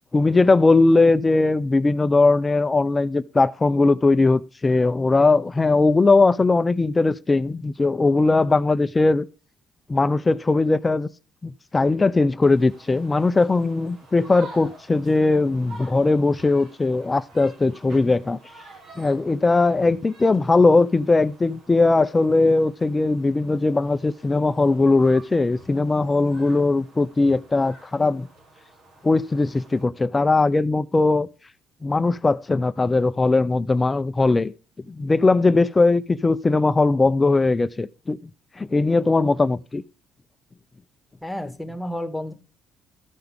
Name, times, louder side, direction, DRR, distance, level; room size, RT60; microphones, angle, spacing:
voice 1, 0.1-9.3 9.9-11.1 11.4-18.4 19.0-28.3 29.0-31.3 31.8-34.5 35.0-38.2 38.6-39.8, left 3 dB, 20° left, 0.5 m, -19 dB
sound 1, 12.4-29.8, right 2 dB, 65° right, 3.1 m, -48 dB
voice 2, 41.2-42.3, left 1 dB, 5° left, 1.5 m, -31 dB
14.0 x 5.8 x 3.5 m
cardioid pair, 95°, 0 cm